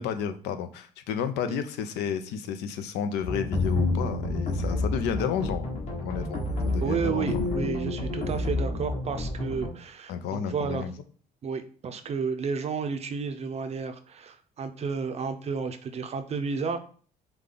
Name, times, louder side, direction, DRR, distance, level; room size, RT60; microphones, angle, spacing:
voice 1, 0.0-6.4 6.7-7.4 10.1-10.9, left 7 dB, 90° left, 9 dB, 0.5 m, -31 dB
sound 1, 3.2-9.7, left 2 dB, 40° left, 1.4 m, -29 dB
voice 2, 6.8-10.8 11.4-16.8, right 5 dB, 40° right, 8 dB, 0.5 m, -32 dB
5.1 x 2.3 x 3.7 m, 0.44 s
cardioid pair, 110°, 17 cm